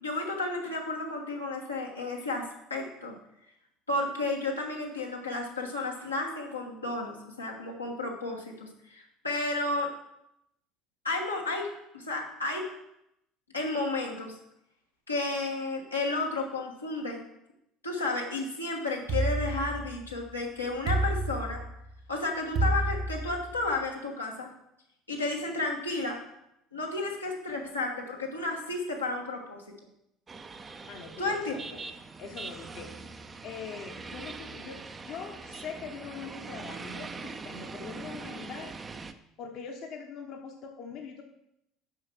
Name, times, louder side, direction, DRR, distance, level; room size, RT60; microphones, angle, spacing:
voice 1, 0.0-3.1 3.9-9.9 11.0-12.7 13.5-14.4 15.1-17.2 17.8-21.6 22.1-24.5 25.1-26.2 26.7-29.6 31.2-31.5, left 2 dB, 85° left, -2 dB, 1.4 m, -32 dB
sound 1, 19.1-20.2 20.9-21.9 22.6-23.7, right 2 dB, 55° right, 1.8 m, -29 dB
sound 2, 30.3-39.1, right 4 dB, 25° right, 0.6 m, -42 dB
voice 2, 30.9-31.6 32.2-33.0 33.4-38.7 39.4-41.2, left 6 dB, 50° left, 3 dB, 1.0 m, -42 dB
7.5 x 5.7 x 6.0 m, 0.82 s
figure-of-eight pair, 60°, 0 cm